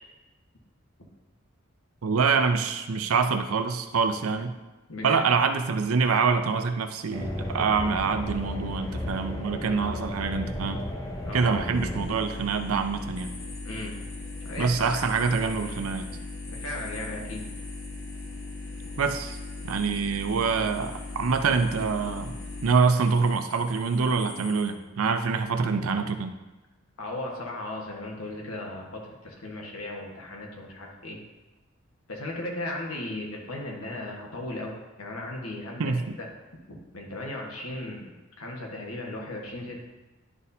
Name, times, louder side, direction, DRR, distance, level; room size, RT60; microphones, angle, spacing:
voice 1, 2.0-4.5 5.0-10.8 11.3-13.3 14.6-16.1 19.0-19.4 19.6-22.4 22.6-26.3 35.8-36.0, right 5 dB, 90° right, 8 dB, 0.6 m, -25 dB
voice 2, 4.9-5.3 11.2-11.6 13.6-13.9 14.4-15.0 16.5-17.5 27.0-31.2 32.1-35.9 36.2-36.3 36.7-39.8, left 2 dB, 90° left, -1 dB, 1.3 m, -36 dB
sound 1, 7.1-12.1, left 1 dB, 15° left, 0.7 m, -34 dB
sound 2, 11.7-22.7, left 2 dB, 40° left, 1.3 m, -38 dB
sound 3, 13.1-24.7, left 2 dB, 70° left, 1.6 m, -47 dB
10.5 x 4.2 x 2.7 m, 1.1 s
head